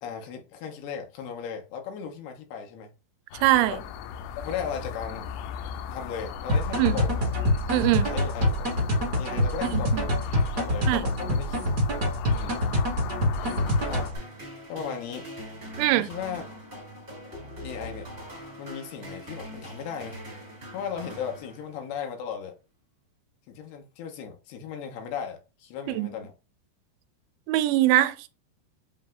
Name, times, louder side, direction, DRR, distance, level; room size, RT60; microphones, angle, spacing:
voice 1, 0.0-2.9 3.6-3.8 4.4-5.3 5.9-7.3 7.9-8.6 9.2-10.1 10.6-11.6 12.3-12.6 13.9-14.1 14.7-15.3 15.9-16.4 17.6-18.1 18.6-20.2 20.7-22.5 23.5-26.3, left 7 dB, 75° left, 2.7 m, -36 dB
sound 1, 3.3-14.1, left 7 dB, 90° left, 3.0 m, -36 dB
voice 2, 3.4-3.8 6.8-7.0 7.7-8.1 9.7-10.1 10.9-11.0 15.8-16.1 25.9-26.2 27.5-28.3, right 15 dB, 85° right, 2.8 m, -23 dB
sound 2, 6.5-14.2, left 1 dB, 45° right, 1.2 m, -26 dB
sound 3, 13.4-22.0, equal, 30° right, 0.7 m, -42 dB
7.6 x 2.7 x 2.4 m
omnidirectional pair, 5.1 m